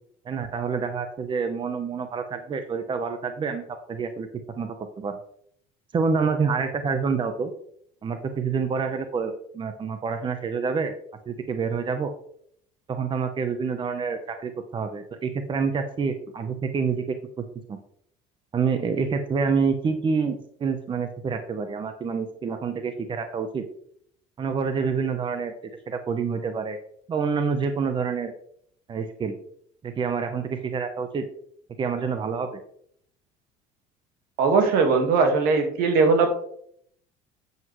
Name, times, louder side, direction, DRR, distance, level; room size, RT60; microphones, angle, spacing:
voice 1, 0.2-4.3 4.6-5.2 5.9-7.5 8.0-10.9 11.3-12.1 12.9-17.8 18.5-23.6 24.4-25.5 25.9-26.8 27.1-28.3 28.9-29.4 29.8-31.3 31.8-32.6, right 5 dB, 30° right, 8 dB, 0.8 m, -27 dB
voice 2, 34.4-36.3, right 4 dB, 70° right, 5 dB, 1.7 m, -20 dB
8.0 x 7.4 x 3.1 m, 0.67 s
supercardioid pair, 100°, 15 cm